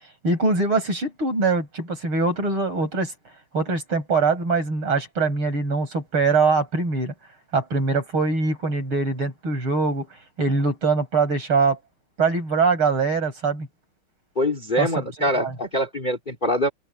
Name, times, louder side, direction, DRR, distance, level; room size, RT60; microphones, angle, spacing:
voice 1, 0.2-3.1 3.5-7.1 7.5-10.1 10.4-11.8 12.2-13.7 14.8-14.9 15.4-15.5, right 4 dB, 75° right, 8.2 m, -22 dB
voice 2, 14.4-16.7, equal, 20° left, 3.6 m, -24 dB
open air
omnidirectional pair, 2.3 m